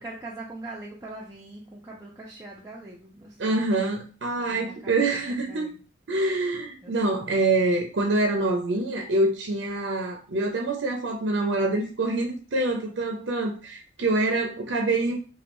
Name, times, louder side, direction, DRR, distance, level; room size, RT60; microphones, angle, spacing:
voice 1, 0.0-3.7 4.4-5.8 6.8-7.3, right 2 dB, 15° right, -5 dB, 0.5 m, -42 dB
voice 2, 3.4-5.7 6.1-15.2, right 2 dB, 65° right, 1 dB, 0.5 m, -25 dB
3.1 x 2.3 x 2.9 m, 0.36 s
head